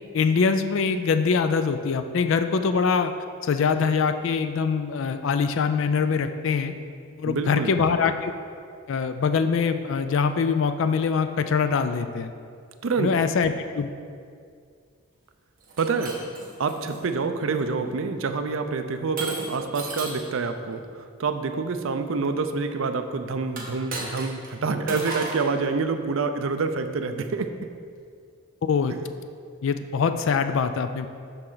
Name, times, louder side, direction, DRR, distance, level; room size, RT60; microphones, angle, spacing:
voice 1, 0.1-3.1 3.4-6.7 7.2-8.3 8.9-12.3 13.0-13.9 28.6-28.9 29.6-31.1, left 5 dB, 60° left, 9 dB, 0.3 m, -23 dB
voice 2, 7.3-7.7 12.8-13.1 15.8-16.2 16.6-27.7, right 4 dB, 65° right, 7 dB, 0.5 m, -27 dB
Shatter, 15.6-17.0 17.6-18.0 19.2-20.3 23.5-24.5 24.9-25.5, right 2 dB, 40° right, 1.4 m, -34 dB
12.5 x 4.3 x 3.9 m, 2.3 s
head